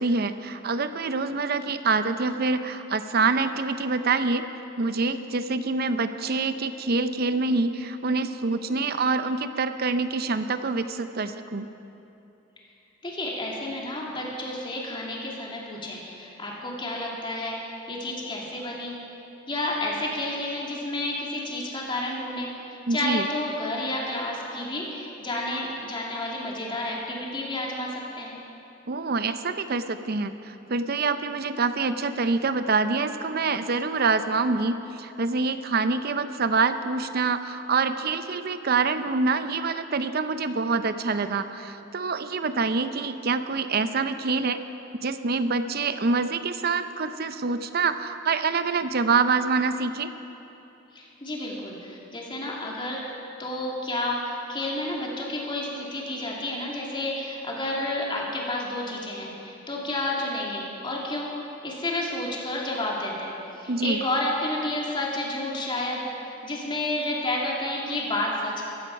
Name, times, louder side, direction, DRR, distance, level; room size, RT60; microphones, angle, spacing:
voice 1, 0.0-4.4 4.8-11.7 22.9-23.2 28.9-44.6 45.0-50.1 63.7-64.0, right 4 dB, 50° right, 11 dB, 0.6 m, -26 dB
voice 2, 13.0-18.9 19.5-28.4 50.9-53.0 53.4-61.3 61.6-68.6, left 1 dB, 25° left, -3 dB, 2.6 m, -30 dB
15.5 x 13.0 x 5.8 m, 2.8 s
head